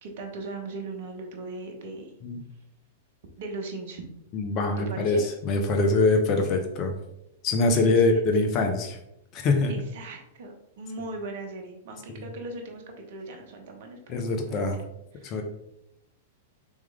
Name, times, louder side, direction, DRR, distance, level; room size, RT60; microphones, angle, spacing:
voice 1, 0.0-2.1 3.4-4.1 4.8-5.2 7.8-8.2 9.7-14.7 15.1-15.4, right 2 dB, 60° right, 3 dB, 0.9 m, -38 dB
voice 2, 4.3-6.9 7.4-9.0 9.3-9.7 14.1-14.8 15.2-15.4, left 3 dB, 40° left, 5 dB, 0.8 m, -23 dB
3.6 x 3.0 x 3.5 m, 0.83 s
hypercardioid pair, 105°, 0 cm